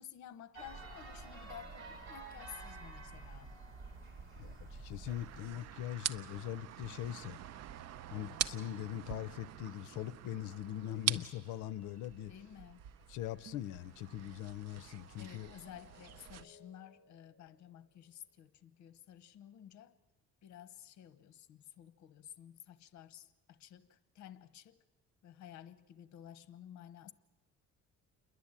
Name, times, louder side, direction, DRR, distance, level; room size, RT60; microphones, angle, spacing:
voice 1, 0.0-3.5 12.3-12.8 15.2-19.9 20.4-24.8 25.2-27.1, left 10 dB, 70° left, 1.0 m, -53 dB
sound 1, 0.5-5.9, right 3 dB, 40° right, 4.1 m, -49 dB
voice 2, 4.4-7.4 8.1-12.3 13.1-15.5, left 12 dB, 85° left, 0.7 m, -41 dB
sound 2, 5.1-16.5, right 11 dB, 55° right, 0.7 m, -44 dB
Mallet percussion, 11.9-18.4, left 3 dB, 35° left, 6.0 m, -67 dB
28.5 x 11.5 x 8.8 m
cardioid pair, 120°, 30 cm